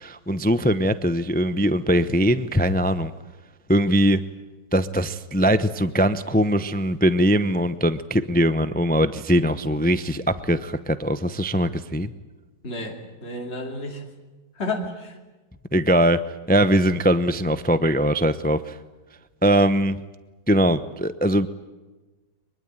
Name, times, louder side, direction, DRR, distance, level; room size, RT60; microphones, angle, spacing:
voice 1, 0.0-3.1 3.7-4.2 4.7-12.1 15.7-16.2 16.5-18.8 19.4-20.0 20.5-21.5, equal, 10° left, 12 dB, 0.4 m, -21 dB
voice 2, 12.6-14.0 14.6-15.1, left 2 dB, 40° left, 2 dB, 3.2 m, -31 dB
23.5 x 22.5 x 9.1 m, 1.2 s
omnidirectional pair, 1.8 m